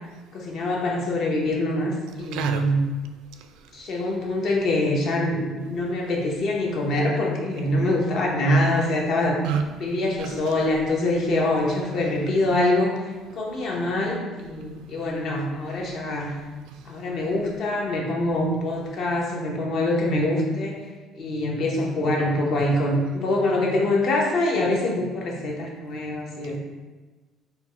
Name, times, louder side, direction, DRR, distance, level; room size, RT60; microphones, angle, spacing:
voice 1, 0.3-1.9 2.2-2.8 3.7-9.4 9.8-12.9 13.3-16.3 16.9-20.8 21.2-26.6, left 1 dB, 50° left, -1 dB, 0.7 m, -24 dB
voice 2, 2.3-2.7 9.4-9.7 10.2-10.5 16.7-16.8, right 6 dB, 80° right, 7 dB, 0.3 m, -27 dB
3.9 x 2.1 x 4.4 m, 1.2 s
cardioid pair, 160°, 0 cm